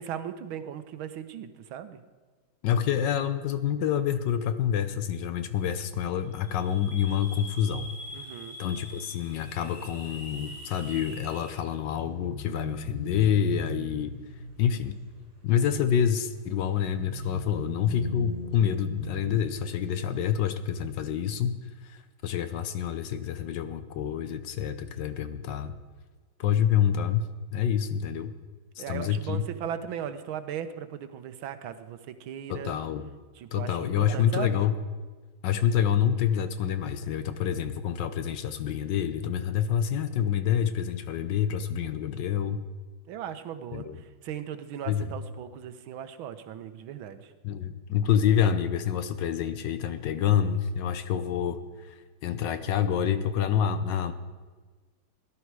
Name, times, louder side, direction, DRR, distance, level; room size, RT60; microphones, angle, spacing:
voice 1, 0.0-2.0 8.1-8.6 28.8-32.8 33.4-34.6 43.1-43.9 44.2-47.3, right 9 dB, 85° right, 10 dB, 1.6 m, -37 dB
voice 2, 2.6-7.9 8.6-14.2 14.6-15.0 15.4-21.6 21.8-22.0 22.2-25.8 26.4-28.3 28.8-29.4 32.5-33.1 33.5-34.7 35.4-42.6 43.7-44.0 44.9-45.1 47.4-51.9 52.2-54.1, left 9 dB, 70° left, 11 dB, 1.3 m, -27 dB
sound 1, 6.3-11.6, left 2 dB, 30° left, 2.2 m, -44 dB
sound 2, 11.8-20.2, equal, 20° right, 2.9 m, -41 dB
16.5 x 11.5 x 4.7 m, 1.4 s
omnidirectional pair, 2.2 m